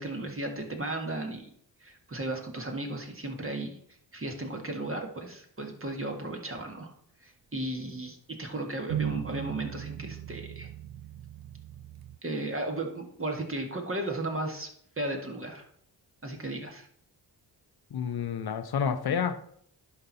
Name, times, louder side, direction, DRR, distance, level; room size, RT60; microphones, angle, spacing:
voice 1, 0.0-1.5 1.8-3.8 4.1-6.9 7.2-10.7 12.2-14.7 15.0-15.7 16.2-16.9, right 2 dB, 30° right, 1.8 m, -35 dB
sound 1, 8.9-12.2, right 11 dB, 60° right, 0.6 m, -37 dB
voice 2, 17.9-19.3, left 7 dB, 60° left, 0.7 m, -29 dB
11.0 x 4.6 x 4.1 m
cardioid pair, 60°, 43 cm